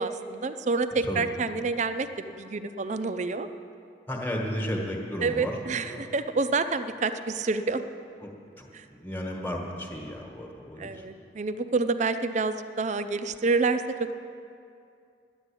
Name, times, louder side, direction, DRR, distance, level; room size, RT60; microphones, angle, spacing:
voice 1, 0.0-3.5 5.2-7.8 8.7-8.8 10.8-14.2, right 3 dB, 40° right, 10 dB, 0.5 m, -28 dB
voice 2, 4.1-5.6 5.8-6.1 8.2-8.3 8.6-8.7 9.0-11.0, equal, 10° left, 0 dB, 1.3 m, -33 dB
10.5 x 9.7 x 8.5 m, 2.5 s
head